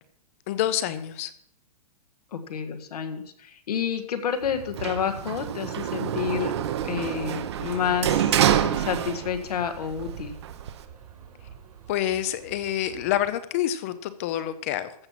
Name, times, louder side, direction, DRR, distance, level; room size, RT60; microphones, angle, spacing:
voice 1, 0.5-1.3 11.9-15.1, left 12 dB, 25° left, 14 dB, 0.5 m, -27 dB
voice 2, 2.3-6.5 6.8-8.4 8.7-10.4, left 8 dB, 80° left, 6 dB, 1.6 m, -29 dB
sound 1, 4.4-13.3, right 7 dB, 75° right, 3.3 m, -44 dB
Sliding door, 4.8-9.6 9.9-10.9, right 10 dB, 45° right, 0.8 m, -26 dB
14.5 x 7.3 x 5.7 m, 0.70 s
hypercardioid pair, 175°, 19 cm